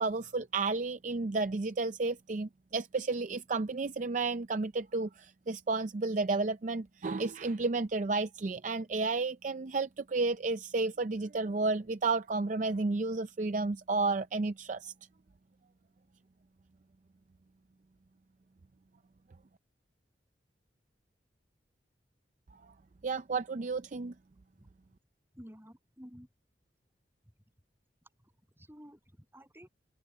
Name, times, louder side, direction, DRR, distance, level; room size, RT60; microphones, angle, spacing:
voice 1, 0.0-14.9 23.0-24.1, right 3 dB, 45° right, 0.5 m, -32 dB
voice 2, 25.3-26.3 28.2-29.7, equal, 15° right, 8.0 m, -52 dB
open air
head